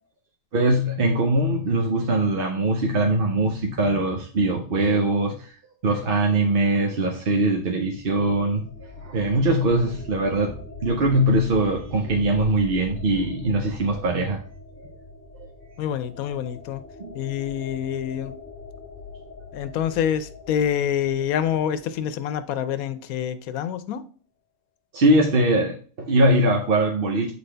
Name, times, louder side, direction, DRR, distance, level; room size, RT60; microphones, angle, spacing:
voice 1, 0.5-5.5 5.8-8.7 9.0-14.4 14.8-14.9 17.0-17.2 24.9-27.3, right 1 dB, 50° right, 0.8 m, -22 dB
sound 1, 7.9-22.5, left 3 dB, 40° left, 1.0 m, -41 dB
voice 2, 15.8-16.8 17.1-18.3 19.5-24.0, left 9 dB, 90° left, 1.1 m, -26 dB
7.7 x 4.0 x 3.3 m
omnidirectional pair, 1.5 m